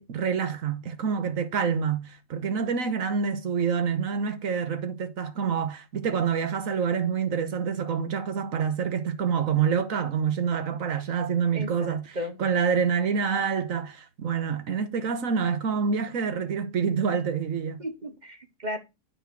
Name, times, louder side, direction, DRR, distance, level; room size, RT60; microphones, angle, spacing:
voice 1, 0.0-17.8, right 6 dB, 60° right, 1.3 m, -27 dB
voice 2, 11.5-12.4 17.8-18.8, left 1 dB, 35° right, 0.8 m, -35 dB
9.3 x 4.5 x 4.6 m
omnidirectional pair, 1.7 m